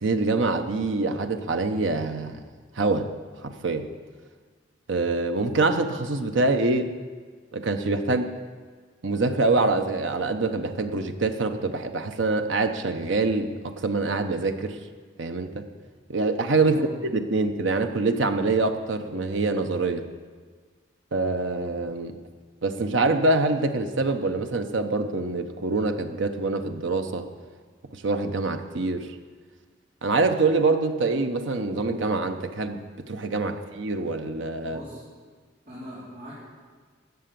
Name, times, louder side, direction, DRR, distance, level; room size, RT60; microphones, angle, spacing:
voice 1, 0.0-2.4 2.7-3.1 3.4-3.9 4.9-6.9 7.5-8.3 9.0-14.8 15.2-15.6 16.1-20.0 21.1-22.2 22.6-27.3 27.9-29.1 30.0-34.8, right 3 dB, 85° right, 7 dB, 0.9 m, -25 dB
voice 2, 16.6-16.9 34.6-35.0 35.6-36.3, equal, 40° right, -10 dB, 3.9 m, -41 dB
13.5 x 7.8 x 6.8 m, 1.5 s
head